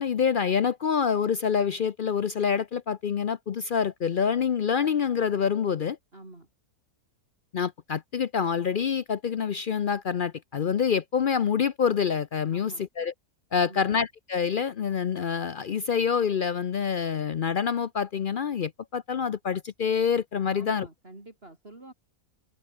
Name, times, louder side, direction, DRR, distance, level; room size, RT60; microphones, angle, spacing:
voice 1, 0.0-6.0 7.5-13.1 13.5-20.9, left 7 dB, 65° left, 0.5 m, -26 dB
voice 2, 6.1-6.5 12.5-12.9 13.6-13.9 20.4-21.9, right 2 dB, 35° right, 4.4 m, -47 dB
omnidirectional pair, 1.7 m